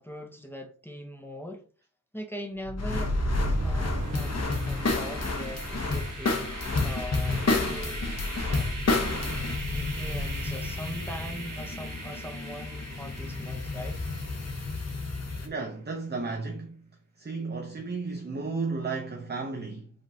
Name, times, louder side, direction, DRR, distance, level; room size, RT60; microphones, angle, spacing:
voice 1, 0.0-1.6 2.1-3.2 3.6-8.0 8.5-8.7 9.7-14.0, equal, 5° left, 0.8 m, -41 dB
sound 1, 2.6-14.5, equal, 65° right, 1.3 m, -34 dB
sound 2, 2.8-15.5, left 3 dB, 50° left, 0.9 m, -31 dB
voice 2, 15.4-16.8 17.2-19.9, right 4 dB, 30° right, 0.7 m, -33 dB
5.1 x 3.6 x 2.8 m
wide cardioid pair, 75°, 33 cm